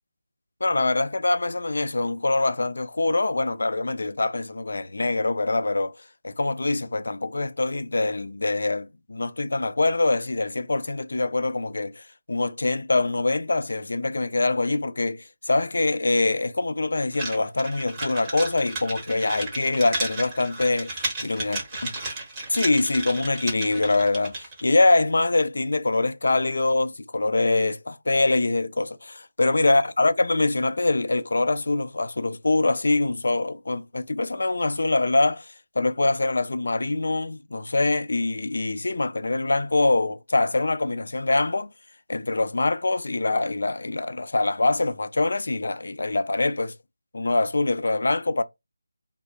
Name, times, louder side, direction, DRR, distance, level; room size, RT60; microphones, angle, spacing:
voice 1, 0.6-6.0 6.2-21.6 22.5-41.7 42.1-46.7 47.1-48.4, left 2 dB, 60° left, 0.3 m, -24 dB
sound 1, 17.1-24.6, right 2 dB, 20° right, 0.8 m, -33 dB
2.6 x 2.1 x 2.2 m
figure-of-eight pair, 160°, 0 cm